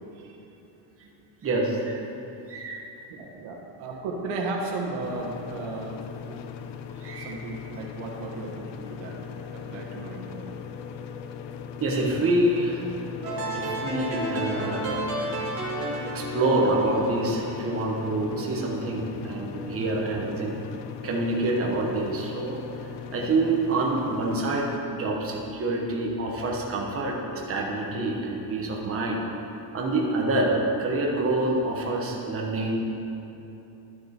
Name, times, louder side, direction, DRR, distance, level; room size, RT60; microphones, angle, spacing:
voice 1, 1.4-2.1 2.5-2.8 7.0-7.3 11.8-12.9 13.5-15.3 16.0-20.6 21.0-29.2 29.7-32.7, right 2 dB, 30° right, -1 dB, 1.2 m, -27 dB
voice 2, 3.1-6.0 6.3-6.4 7.1-9.2 9.5-10.5, right 3 dB, 85° right, -1 dB, 1.5 m, -35 dB
sound 1, 5.0-24.8, left 7 dB, 65° left, 0.6 m, -39 dB
sound 2, 13.2-18.3, right 1 dB, 50° right, 2.2 m, -32 dB
11.5 x 6.4 x 4.4 m, 3.0 s
cardioid pair, 150°, 47 cm